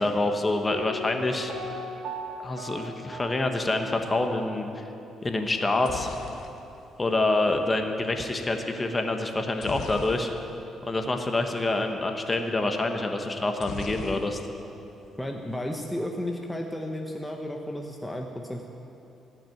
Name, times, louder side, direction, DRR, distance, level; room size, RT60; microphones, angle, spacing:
voice 1, 0.0-1.5 2.4-4.9 5.2-6.1 7.0-10.3 10.8-14.4, left 2 dB, 25° left, 5 dB, 1.2 m, -26 dB
Piano, 0.7-4.5 4.7-4.8, right 1 dB, 80° right, 1.0 m, -38 dB
sound 1, 5.5-7.6 9.6-10.7 11.0-11.2 11.4-11.6 13.6-14.7 15.0-15.6, left 6 dB, 70° left, 0.8 m, -40 dB
voice 2, 15.2-18.7, left 1 dB, 5° left, 1 dB, 0.9 m, -33 dB
16.5 x 6.1 x 9.3 m, 2.9 s
cardioid pair, 90°, 0 cm